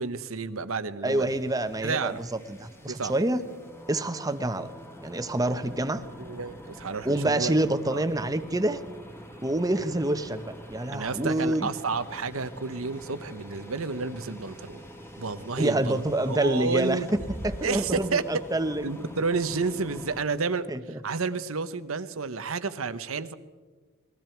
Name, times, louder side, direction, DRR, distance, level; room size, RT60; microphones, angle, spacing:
voice 1, 0.0-1.4 1.8-2.2 2.9-3.1 6.2-7.5 7.9-8.0 10.9-14.9 15.2-16.0 16.3-17.1 17.6-18.4 18.8-23.3, right 4 dB, 90° right, 12 dB, 1.0 m, -31 dB
voice 2, 1.0-2.1 2.5-3.4 3.9-4.7 5.0-6.0 7.0-8.8 9.4-11.7 15.6-18.8 20.7-20.8, right 1 dB, 20° right, 10 dB, 1.0 m, -27 dB
sound 1, 1.1-20.2, equal, 10° left, 2.0 m, -44 dB
28.0 x 21.5 x 4.6 m, 1.4 s
head